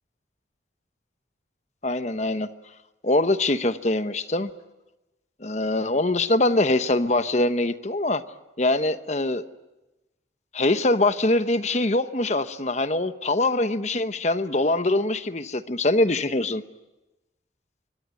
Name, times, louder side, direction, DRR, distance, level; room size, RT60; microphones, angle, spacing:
voice 1, 1.8-2.5 3.0-4.5 5.4-8.2 8.6-9.4 10.5-16.6, left 2 dB, 40° left, 11 dB, 1.0 m, -23 dB
25.5 x 23.0 x 9.2 m, 1.0 s
head